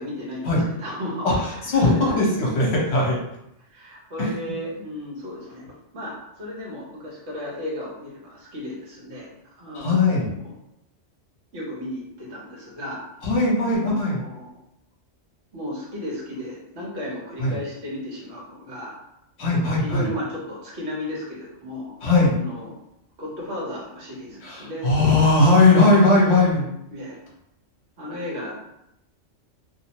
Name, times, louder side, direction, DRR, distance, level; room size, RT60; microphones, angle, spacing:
voice 1, 0.0-2.1 3.6-5.6 5.9-9.3 9.6-10.1 10.4-10.5 11.5-13.0 13.6-14.5 15.5-18.9 19.4-21.9 22.4-22.7 23.2-24.9 26.9-27.2 28.0-28.5, left 1 dB, 60° right, -5 dB, 1.2 m, -34 dB
voice 2, 1.2-3.2 4.2-4.3 9.7-10.3 13.2-14.2 17.4-17.5 19.4-20.1 22.0-22.3 24.4-26.7, left 2 dB, 60° left, -3 dB, 1.0 m, -19 dB
2.7 x 2.0 x 2.8 m, 0.82 s
omnidirectional pair, 1.3 m